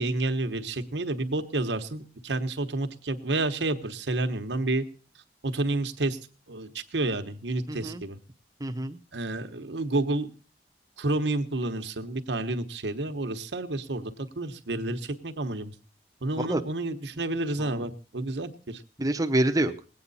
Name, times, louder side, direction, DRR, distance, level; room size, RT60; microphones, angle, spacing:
voice 1, 0.0-4.8 5.4-6.2 6.5-8.2 9.1-10.3 11.0-14.1 14.4-15.7 16.2-18.8, right 2 dB, 75° right, 8 dB, 1.1 m, -30 dB
voice 2, 7.7-8.0 8.6-9.0 16.4-16.6 17.6-17.9 19.0-19.7, right 1 dB, 20° right, 5 dB, 0.9 m, -27 dB
20.0 x 8.7 x 4.1 m, 0.37 s
head